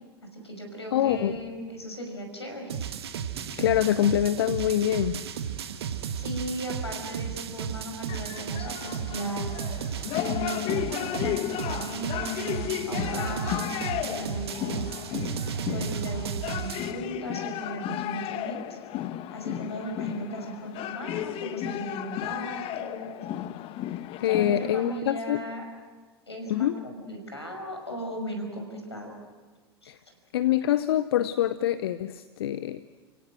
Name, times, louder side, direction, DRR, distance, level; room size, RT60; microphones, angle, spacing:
voice 1, 0.3-2.7 5.8-9.5 10.1-14.9 15.7-18.8 19.3-23.3 24.3-25.6 26.3-29.1 29.8-29.9, equal, 90° left, 3 dB, 5.8 m, -37 dB
voice 2, 0.9-1.4 3.6-5.2 24.2-25.4 26.5-26.8 29.9-30.0 30.3-32.8, left 11 dB, 65° left, 14 dB, 0.7 m, -25 dB
sound 1, 1.0-1.8 3.3-4.1 5.8-5.9, right 5 dB, 45° right, 6.9 m, -49 dB
sound 2, 2.7-16.9, right 8 dB, 70° right, 1.6 m, -34 dB
sound 3, 8.1-25.0, left 13 dB, 45° left, 1.1 m, -34 dB
29.5 x 17.0 x 7.8 m, 1.4 s
figure-of-eight pair, 85°, 14 cm